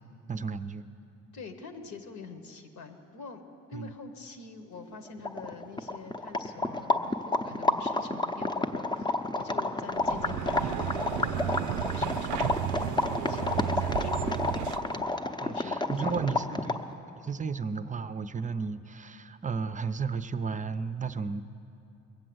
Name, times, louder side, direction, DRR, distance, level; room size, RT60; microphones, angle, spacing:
voice 1, 0.3-0.9 3.7-3.9 15.4-16.8 17.2-21.4, right 5 dB, 25° right, 12 dB, 0.5 m, -33 dB
voice 2, 1.3-3.4 3.7-11.6 11.9-14.7 14.9-15.1 15.5-16.7, left 4 dB, 70° left, 7 dB, 1.4 m, -45 dB
sound 1, 4.9-5.0 5.2-16.9, left 2 dB, 15° left, 0.7 m, -30 dB
sound 2, 9.9-15.0, right 12 dB, 80° right, 0.5 m, -33 dB
21.0 x 7.6 x 7.9 m, 2.9 s
cardioid pair, 90°, 30 cm